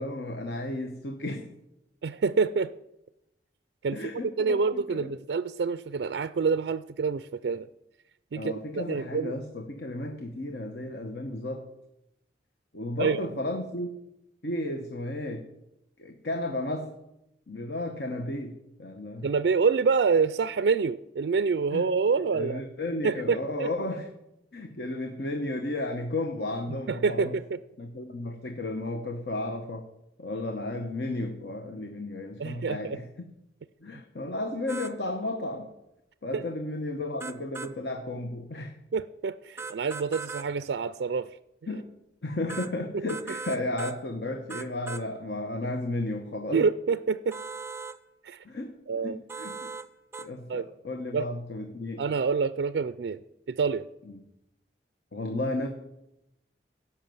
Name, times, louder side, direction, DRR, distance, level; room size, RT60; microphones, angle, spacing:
voice 1, 0.0-1.5 3.9-5.1 8.3-11.7 12.7-14.0 14.4-15.5 16.0-17.0 17.5-19.3 21.7-21.9 22.3-24.1 24.5-27.4 27.8-29.9 30.2-33.3 33.8-35.7 36.2-38.8 41.7-41.9 42.2-46.7 48.4-49.7 50.2-52.1 54.0-54.2 55.1-55.7, left 2 dB, 70° left, 5 dB, 1.0 m, -33 dB
voice 2, 2.0-2.7 3.8-4.0 4.4-7.7 8.3-9.3 13.0-13.2 19.2-22.6 23.0-23.7 26.9-27.4 32.4-33.0 36.3-36.4 38.9-41.3 42.9-43.0 46.5-47.4 48.2-48.4 48.9-49.2 50.5-50.7 51.1-51.3 52.0-53.2 53.5-53.9, right 5 dB, 70° right, 14 dB, 0.4 m, -27 dB
sound 1, 34.7-35.0 37.2-37.7 39.6-40.5 42.5-42.7 43.1-44.0 44.5-45.1 47.3-48.0 49.3-49.9 50.1-50.3, right 4 dB, 15° right, 0.5 m, -38 dB
16.0 x 5.8 x 7.7 m, 0.89 s
head